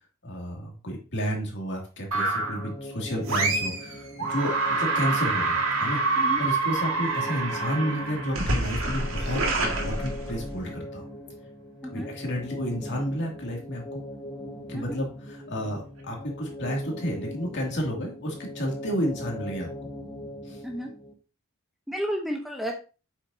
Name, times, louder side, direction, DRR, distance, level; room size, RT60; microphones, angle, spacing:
voice 1, 0.2-11.1 11.9-14.0 14.7-19.7 20.4-20.6, equal, 55° left, 0 dB, 2.4 m, -31 dB
sound 1, 2.1-2.7 3.3-3.9 4.2-10.6, right 3 dB, 70° right, 1.9 m, -27 dB
sound 2, 2.3-21.1, left 1 dB, 20° left, 1.3 m, -40 dB
voice 2, 21.9-22.7, equal, ahead, 1 dB, 0.8 m, -31 dB
8.1 x 6.4 x 2.7 m, 0.34 s
head